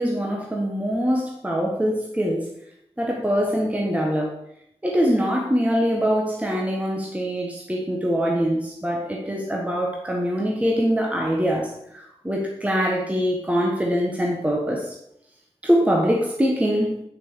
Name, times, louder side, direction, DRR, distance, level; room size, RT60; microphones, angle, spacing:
voice 1, 0.0-2.4 3.0-4.3 4.8-14.9 15.6-17.0, equal, 10° right, -2 dB, 1.5 m, -23 dB
8.8 x 7.1 x 4.8 m, 0.76 s
wide cardioid pair, 95°, 11 cm